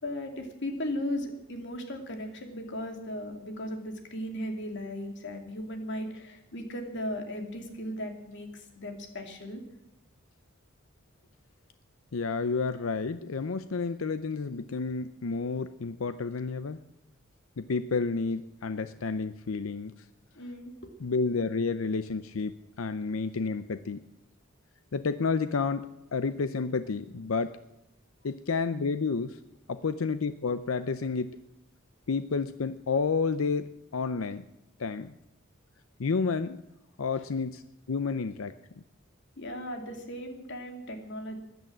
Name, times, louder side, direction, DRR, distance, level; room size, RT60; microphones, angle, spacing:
voice 1, 0.0-9.6 20.4-20.9 39.4-41.4, left 1 dB, 60° left, 4 dB, 2.7 m, -37 dB
voice 2, 12.1-16.8 17.6-19.9 21.0-24.0 24.9-25.9 26.1-27.6 28.2-29.4 29.7-31.4 32.1-34.4 34.8-35.1 36.0-36.6 37.0-37.6 37.9-38.5, left 4 dB, 85° left, 12 dB, 0.6 m, -30 dB
15.5 x 11.0 x 7.5 m, 0.88 s
head